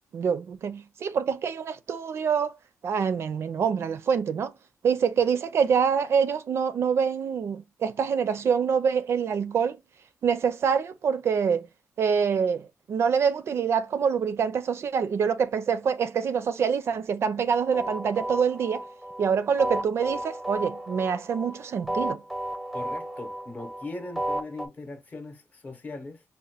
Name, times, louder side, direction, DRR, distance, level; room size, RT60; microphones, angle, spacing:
voice 1, 0.1-2.5 2.8-4.5 4.8-9.8 10.2-11.6 12.0-18.9 19.2-22.2, right 6 dB, 60° right, 0.4 m, -25 dB
sound 1, 17.6-24.7, right 1 dB, 5° right, 0.6 m, -33 dB
voice 2, 22.7-26.2, left 2 dB, 30° left, 0.8 m, -39 dB
5.3 x 2.2 x 2.8 m
wide cardioid pair, 135°, 5 cm